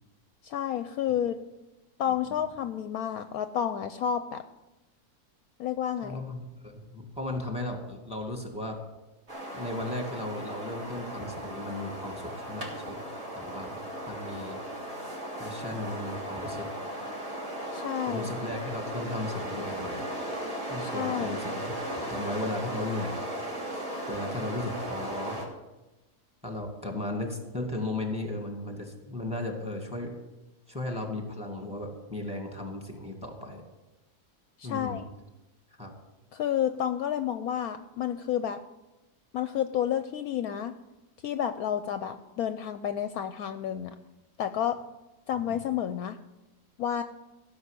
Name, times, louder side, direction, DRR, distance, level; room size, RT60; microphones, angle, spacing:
voice 1, 0.4-1.4 2.0-4.4 5.6-6.2 17.7-18.3 20.8-21.4 34.6-35.0 36.3-38.6 39.3-40.8 41.2-44.0 44.4-44.8 45.3-46.2 46.8-47.0, left 9 dB, 70° left, 10 dB, 1.0 m, -30 dB
voice 2, 6.0-8.8 9.5-13.0 13.3-13.7 14.1-14.6 15.4-16.7 18.1-20.0 20.7-21.6 22.0-23.3 24.1-25.4 26.4-30.1 30.7-33.6 34.6-35.0 35.8-35.9 45.5-45.6, left 2 dB, 5° right, 2 dB, 2.2 m, -35 dB
sound 1, 9.3-25.4, equal, 40° right, 3.4 m, -36 dB
15.5 x 6.5 x 8.3 m, 1.0 s
omnidirectional pair, 1.7 m